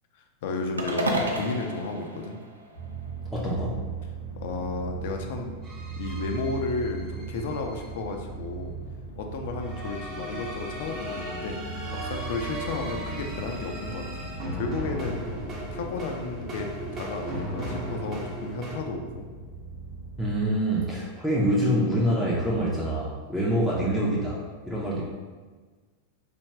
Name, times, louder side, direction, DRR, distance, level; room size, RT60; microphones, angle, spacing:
voice 1, 0.4-2.4 4.4-5.5 6.0-8.8 9.2-11.6 11.9-14.2 14.5-15.2 15.7-19.2, left 3 dB, 55° left, 3 dB, 0.4 m, -33 dB
sound 1, 0.8-3.1, right 1 dB, 75° right, 0.4 m, -31 dB
sound 2, 2.7-20.5, right 5 dB, 85° left, 0.7 m, -38 dB
voice 2, 3.3-3.8 20.2-25.0, right 1 dB, ahead, -7 dB, 0.5 m, -26 dB
sound 3, 5.6-7.9 9.6-18.8, equal, 30° right, 0.7 m, -37 dB
3.3 x 2.3 x 3.2 m, 1.4 s
figure-of-eight pair, 90°, 0 cm